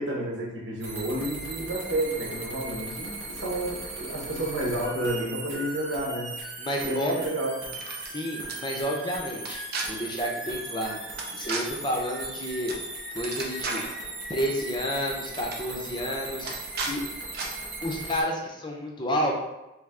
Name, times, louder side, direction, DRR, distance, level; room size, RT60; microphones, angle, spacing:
voice 1, 0.0-6.3 6.8-7.5, right 1 dB, 70° right, -3 dB, 1.2 m, -30 dB
sound 1, 0.8-18.2, right 2 dB, 90° right, 1.1 m, -38 dB
voice 2, 6.6-7.1 8.1-9.6 9.9-11.0 11.3-12.7 13.1-13.8 14.3-16.5 16.8-17.0 17.8-19.3, equal, 25° left, 0 dB, 0.6 m, -30 dB
sound 2, 7.6-8.1 8.5-8.6 9.4-9.8 11.2-11.6 12.7-12.8 13.1-13.9 14.9-15.0 15.3-15.6 16.4-16.9 17.3-17.5, right 3 dB, 55° right, 0.6 m, -33 dB
3.3 x 3.2 x 3.7 m, 0.98 s
head